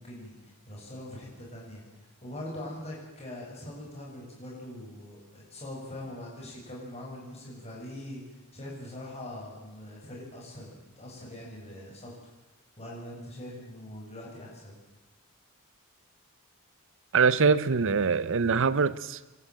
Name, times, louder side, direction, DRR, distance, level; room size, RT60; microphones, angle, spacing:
voice 1, 0.0-12.1 12.8-14.8, left 1 dB, 30° left, 7.8 m, -42 dB
voice 2, 17.1-19.2, right 5 dB, 60° right, 0.7 m, -23 dB
28.0 x 12.5 x 9.1 m
head